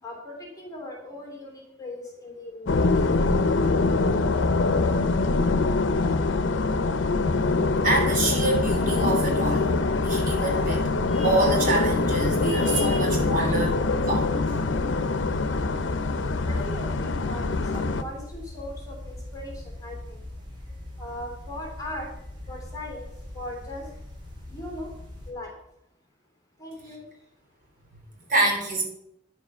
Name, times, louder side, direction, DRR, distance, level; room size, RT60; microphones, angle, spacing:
voice 1, 0.0-3.1 13.4-13.5 16.4-20.3 20.9-22.1 22.4-23.9 24.5-24.9 25.2-25.6 26.6-27.1, left 1 dB, 20° left, 1 dB, 3.0 m, -39 dB
sound 1, 2.7-18.0, left 3 dB, 85° left, 0.7 m, -24 dB
voice 2, 7.8-9.7 10.0-14.6 28.3-28.8, right 2 dB, 45° right, 0 dB, 3.1 m, -26 dB
sound 2, 9.7-25.3, left 1 dB, 25° right, 3.5 m, -41 dB
10.0 x 7.5 x 5.5 m, 0.76 s
head